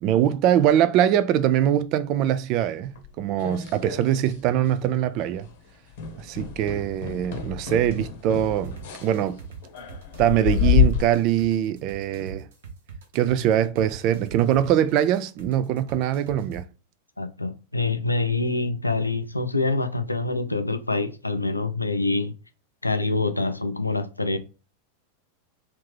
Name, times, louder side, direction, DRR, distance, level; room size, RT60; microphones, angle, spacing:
voice 1, 0.0-5.5 6.2-9.4 10.2-12.5 13.1-16.7, right 11 dB, 40° right, 0.3 m, -22 dB
sound 1, 3.0-4.4 4.7-5.0 5.3-5.5 5.9-11.0, left 10 dB, 55° left, 0.9 m, -27 dB
sound 2, 8.6-16.6, right 7 dB, 60° right, 0.8 m, -41 dB
voice 2, 17.2-22.3 22.8-24.4, left 3 dB, 85° left, 0.4 m, -25 dB
3.2 x 2.7 x 3.3 m
figure-of-eight pair, 90°, 0 cm